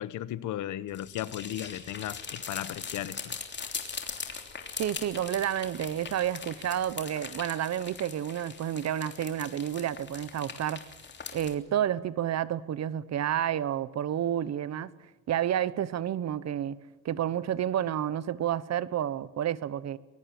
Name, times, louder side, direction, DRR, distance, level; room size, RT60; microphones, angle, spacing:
voice 1, 0.0-3.3, left 12 dB, 80° left, 1.0 m, -35 dB
sound 1, 0.9-11.5, left 5 dB, 35° left, 3.2 m, -41 dB
voice 2, 4.8-10.8 11.3-14.9 15.3-16.8 17.0-20.0, right 10 dB, 60° right, 1.0 m, -30 dB
22.5 x 22.0 x 7.6 m
cardioid pair, 90°, 30 cm